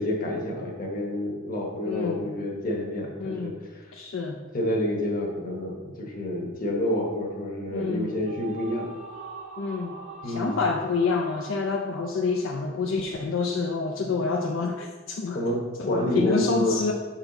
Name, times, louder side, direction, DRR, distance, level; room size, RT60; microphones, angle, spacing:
voice 1, 0.0-3.5 4.5-8.9 10.2-10.6 15.3-16.8, left 1 dB, 45° left, 0 dB, 1.1 m, -28 dB
voice 2, 1.8-2.3 3.2-3.6 3.9-4.4 7.7-8.2 9.6-10.0 10.2-15.4 15.8-16.9, left 4 dB, 75° left, 2 dB, 0.5 m, -28 dB
sound 1, 8.1-13.3, right 4 dB, 85° right, 0.8 m, -43 dB
5.7 x 4.4 x 3.9 m, 1.3 s
head